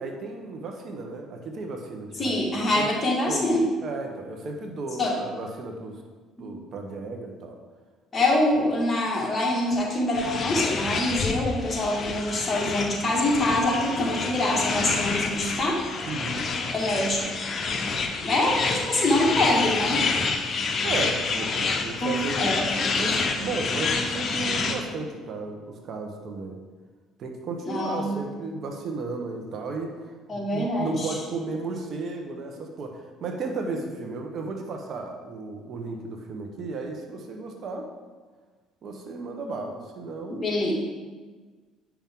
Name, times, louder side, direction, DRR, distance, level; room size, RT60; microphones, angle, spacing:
voice 1, 0.0-2.4 2.8-2.9 3.3-3.4 3.8-6.0 6.4-7.6 16.1-16.5 20.8-26.6 27.2-37.9 38.8-40.5, right 3 dB, 55° right, 3 dB, 1.1 m, -34 dB
voice 2, 2.2-3.7 5.0-5.1 6.4-6.5 8.1-15.8 16.7-17.6 18.2-20.0 22.0-22.6 27.7-28.2 30.3-31.1 40.3-40.8, left 1 dB, 25° left, -3 dB, 2.2 m, -25 dB
sound 1, 10.1-24.8, left 4 dB, 40° left, 0.8 m, -28 dB
8.8 x 5.9 x 3.8 m, 1.4 s
cardioid pair, 95°, 0 cm